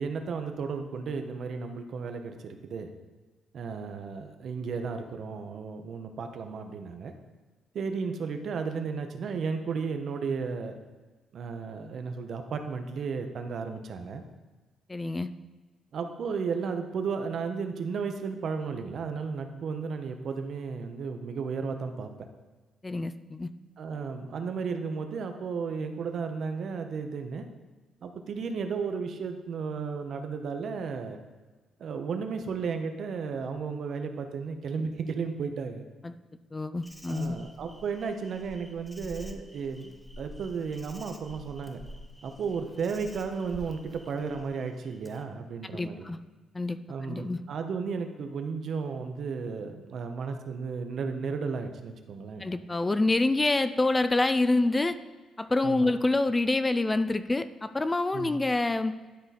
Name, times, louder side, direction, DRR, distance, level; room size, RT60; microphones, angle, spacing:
voice 1, 0.0-2.9 3.5-7.1 7.7-10.8 11.3-14.2 15.9-22.1 23.8-27.5 28.0-31.2 31.8-35.8 37.1-41.8 42.2-46.0 46.9-52.4 55.6-55.9 58.1-58.4, right 5 dB, 60° right, 6 dB, 0.8 m, -34 dB
voice 2, 14.9-15.3 22.8-23.5 36.0-36.1 36.5-37.4 45.7-46.2 46.5-47.4 52.4-55.0 55.4-59.0, left 2 dB, 20° left, 12 dB, 0.4 m, -27 dB
Insect, 36.8-45.2, left 1 dB, ahead, 0.8 m, -49 dB
11.5 x 3.9 x 4.2 m, 1.3 s
cardioid pair, 90°, 0 cm